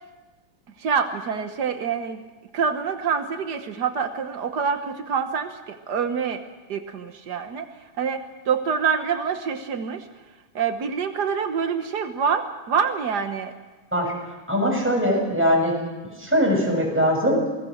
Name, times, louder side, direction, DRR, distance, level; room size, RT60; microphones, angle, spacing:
voice 1, 0.8-2.2 2.5-6.4 6.7-10.1 10.5-13.5, right 6 dB, 85° right, 7 dB, 0.9 m, -26 dB
voice 2, 14.5-15.7 16.2-17.4, equal, 5° right, -1 dB, 6.9 m, -21 dB
28.0 x 20.0 x 6.5 m, 1.2 s
omnidirectional pair, 3.6 m